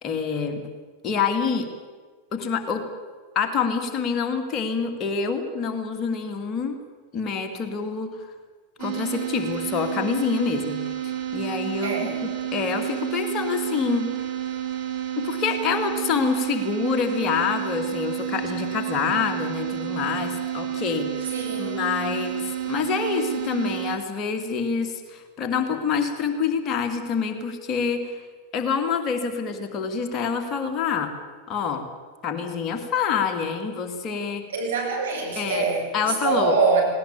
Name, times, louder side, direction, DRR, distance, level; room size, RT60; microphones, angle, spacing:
voice 1, 0.0-0.6 1.0-1.7 2.3-2.8 3.3-6.8 7.1-8.3 8.8-11.9 12.2-14.1 15.2-21.3 21.6-28.2 28.5-31.1 31.5-31.8 32.2-34.4 35.4-35.7 35.9-36.5, left 6 dB, 30° left, 5 dB, 2.5 m, -26 dB
sound 1, 8.8-24.0, right 11 dB, 45° right, 4.3 m, -30 dB
voice 2, 11.8-12.2 21.2-21.8 34.5-36.8, right 4 dB, 65° right, -2 dB, 7.6 m, -24 dB
19.0 x 18.0 x 8.9 m, 1.5 s
figure-of-eight pair, 90°, 0 cm